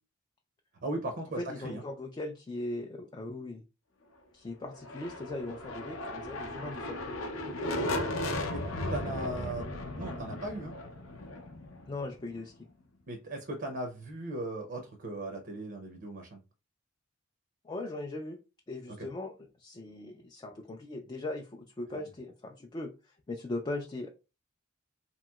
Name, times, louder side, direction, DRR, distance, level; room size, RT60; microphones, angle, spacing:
voice 1, 0.8-1.8 8.5-8.6 8.9-9.7 10.0-10.7 13.1-16.4 18.9-19.1 21.9-22.0, right 1 dB, 55° right, 0.6 m, -38 dB
voice 2, 1.4-3.6 4.3-7.0 11.9-12.5 17.6-18.4 18.7-19.3 19.6-24.1, left 2 dB, 20° left, 0.3 m, -39 dB
sound 1, 4.7-12.5, left 1 dB, 80° left, 0.6 m, -36 dB
2.9 x 2.8 x 2.3 m
head